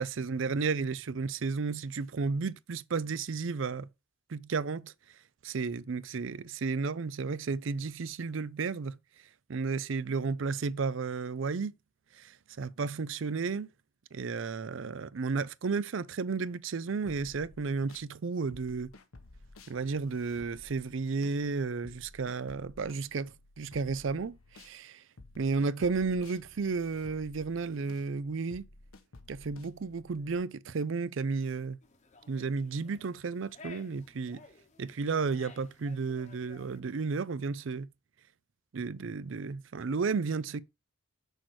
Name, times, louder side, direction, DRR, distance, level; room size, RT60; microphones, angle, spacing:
voice 1, 0.0-3.9 4.3-4.9 5.4-8.9 9.5-11.8 12.2-13.7 14.1-18.9 19.7-25.0 25.4-28.7 29.3-31.8 32.3-34.4 34.8-37.9 38.7-40.6, right 4 dB, 65° right, 0.5 m, -33 dB
sound 1, 17.0-18.1 18.5-24.8 25.2-30.4, left 2 dB, 90° left, 1.2 m, -54 dB
sound 2, 31.8-36.8, left 3 dB, 35° left, 1.0 m, -55 dB
6.4 x 4.7 x 6.2 m
head